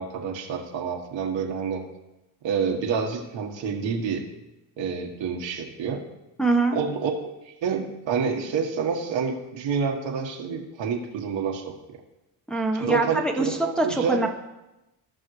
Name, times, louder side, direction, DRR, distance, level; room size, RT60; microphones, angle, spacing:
voice 1, 0.0-1.8 2.4-4.3 4.8-6.0 6.7-7.1 7.4-11.7 12.7-14.3, right 6 dB, 75° right, 1 dB, 1.6 m, -28 dB
voice 2, 6.4-6.8 12.5-14.3, right 2 dB, ahead, 1 dB, 1.2 m, -24 dB
16.5 x 5.6 x 3.3 m, 0.99 s
cardioid pair, 70°, 45 cm